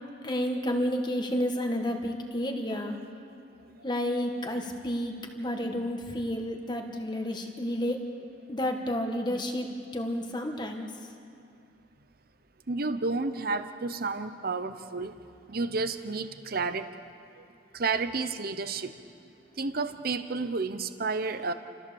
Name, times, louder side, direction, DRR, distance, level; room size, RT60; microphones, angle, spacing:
voice 1, 0.2-3.0 3.8-8.0 8.5-11.1, equal, 25° left, 3 dB, 1.7 m, -31 dB
voice 2, 12.7-15.2 15.5-16.9 17.4-17.5 17.7-18.9 19.6-21.5, right 3 dB, 50° right, 10 dB, 0.9 m, -31 dB
29.5 x 14.0 x 7.2 m, 2.6 s
head